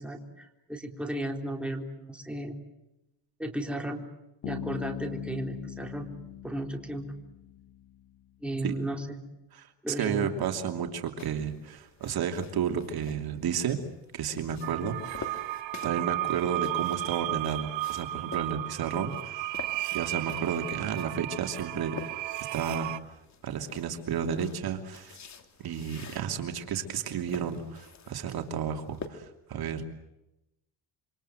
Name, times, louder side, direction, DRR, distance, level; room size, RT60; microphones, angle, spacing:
voice 1, 0.0-2.6 3.4-4.0 4.4-6.1 6.4-7.1 8.4-9.2 9.8-10.3, right 1 dB, ahead, 2 dB, 3.7 m, -34 dB
Bass guitar, 4.4-8.2, left 12 dB, 70° left, 1.7 m, -41 dB
voice 2, 10.0-13.8 14.1-15.4 15.8-19.6 19.9-22.0 22.5-23.2 23.4-25.2 25.6-29.8, right 7 dB, 55° right, 5 dB, 2.9 m, -32 dB
sound 1, 11.2-29.1, left 5 dB, 40° left, 2.9 m, -48 dB
sound 2, 14.6-23.0, right 17 dB, 85° right, 1.6 m, -34 dB
27.5 x 26.0 x 7.9 m, 0.91 s
cardioid pair, 120°, 43 cm